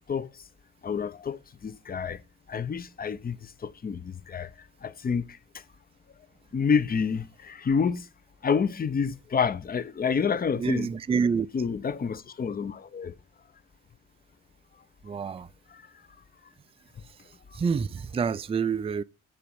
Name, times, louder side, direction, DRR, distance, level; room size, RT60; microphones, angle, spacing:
voice 1, 0.1-0.4 0.8-2.2 2.5-5.4 6.5-8.1 8.4-10.9 11.5-13.1 15.7-15.8, left 6 dB, 30° left, 0.7 m, -28 dB
voice 2, 10.6-11.5 15.0-15.5 17.5-19.0, right 6 dB, 20° right, 0.4 m, -27 dB
10.0 x 3.8 x 7.0 m
cardioid pair, 90°, 30 cm